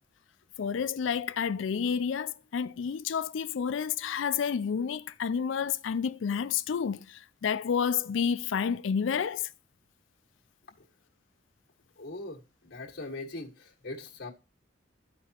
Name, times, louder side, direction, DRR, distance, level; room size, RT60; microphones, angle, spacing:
voice 1, 0.6-9.5, left 7 dB, 80° left, 0.4 m, -30 dB
voice 2, 12.0-14.3, left 2 dB, 55° left, 1.6 m, -41 dB
13.5 x 4.8 x 2.9 m
head